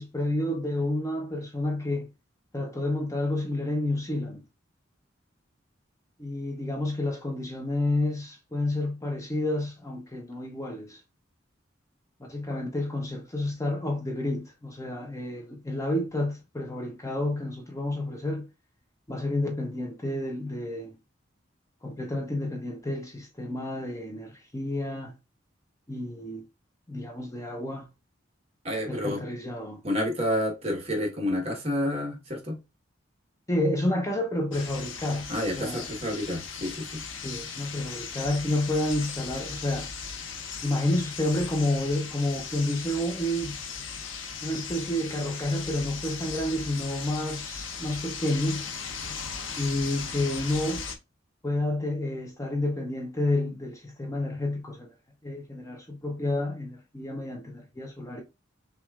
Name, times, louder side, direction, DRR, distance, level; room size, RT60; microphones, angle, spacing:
voice 1, 0.0-2.1 2.5-4.4 6.2-11.0 12.3-18.5 19.1-20.9 21.8-25.2 25.9-26.4 26.9-27.9 28.9-29.8 33.5-35.3 35.6-35.9 37.2-39.9 40.6-43.6 44.4-48.7 49.6-50.8 51.4-54.9 55.2-58.2, left 1 dB, 15° left, 0.6 m, -30 dB
voice 2, 28.6-29.2 29.8-32.6 35.3-37.0, left 1 dB, 30° right, 1.2 m, -29 dB
sound 1, 34.5-51.0, left 6 dB, 85° left, 0.7 m, -38 dB
6.0 x 2.5 x 2.3 m
head